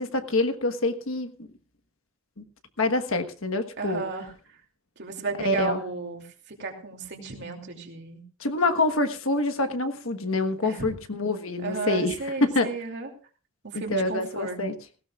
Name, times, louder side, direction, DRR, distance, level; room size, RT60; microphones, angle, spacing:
voice 1, 0.0-1.3 2.4-2.5 2.8-4.0 5.4-5.8 8.4-12.1 12.4-12.7 13.7-14.7, left 2 dB, 65° left, 7 dB, 1.3 m, -26 dB
voice 2, 3.8-4.3 5.0-8.2 10.6-11.0 11.6-13.1 13.6-14.6, right 3 dB, 55° right, 2 dB, 2.7 m, -34 dB
18.5 x 16.5 x 2.4 m, 0.36 s
head